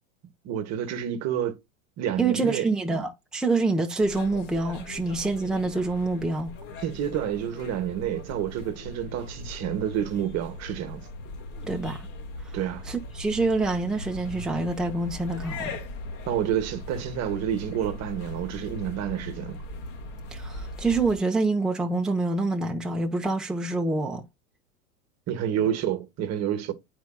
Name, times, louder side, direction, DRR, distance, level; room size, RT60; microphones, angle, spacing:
voice 1, 0.4-1.6 2.0-2.7 6.8-11.1 12.5-12.9 16.3-19.6 25.3-26.7, right 10 dB, 40° right, 1.2 m, -29 dB
voice 2, 2.2-6.5 11.6-12.1 12.4-12.6 12.9-15.8 20.3-24.2, right 3 dB, ahead, 0.8 m, -26 dB
sound 1, 4.0-21.2, left 2 dB, 60° left, 1.7 m, -39 dB
9.3 x 4.7 x 2.2 m
hypercardioid pair, 110°, 41 cm